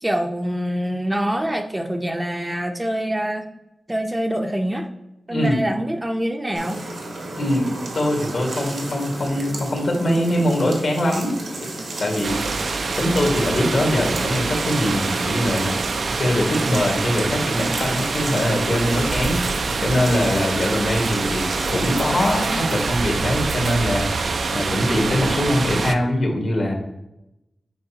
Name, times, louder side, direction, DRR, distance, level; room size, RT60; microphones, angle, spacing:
voice 1, 0.0-3.4 3.9-4.9 5.3-6.8, equal, 15° right, 4 dB, 0.6 m, -25 dB
sound 1, 6.5-22.6, right 2 dB, 85° right, 1.6 m, -33 dB
voice 2, 7.4-11.7 12.0-12.7 13.0-15.8 16.0-26.7, left 1 dB, 65° left, 1 dB, 1.7 m, -22 dB
sound 2, 12.2-26.0, right 4 dB, 70° right, 0.4 m, -25 dB
7.9 x 5.0 x 2.8 m, 0.88 s
wide cardioid pair, 95°, 0 cm